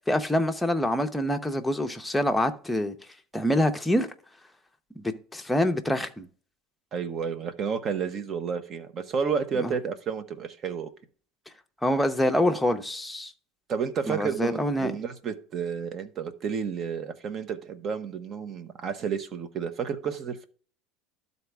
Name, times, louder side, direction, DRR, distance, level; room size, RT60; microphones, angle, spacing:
voice 1, 0.1-2.9 3.3-4.1 5.0-6.3 9.5-9.7 11.8-13.3 14.1-14.9, left 1 dB, 5° left, 0.8 m, -26 dB
voice 2, 6.9-10.9 13.7-20.5, right 6 dB, 35° right, 1.0 m, -31 dB
12.5 x 4.1 x 3.5 m
supercardioid pair, 140°, 0 cm